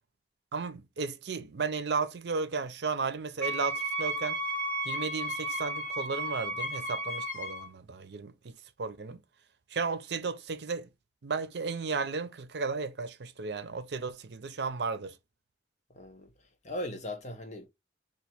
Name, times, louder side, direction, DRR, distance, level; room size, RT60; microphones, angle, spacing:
voice 1, 0.5-4.4 4.8-8.5 8.8-9.2 9.7-10.9 11.2-15.1, right 4 dB, 75° right, 0.6 m, -34 dB
Wind instrument woodwind instrument, 3.4-7.7, right 1 dB, 15° left, 1.1 m, -34 dB
voice 2, 15.9-16.3 16.6-17.7, left 1 dB, 40° left, 0.8 m, -38 dB
3.0 x 2.5 x 4.2 m
head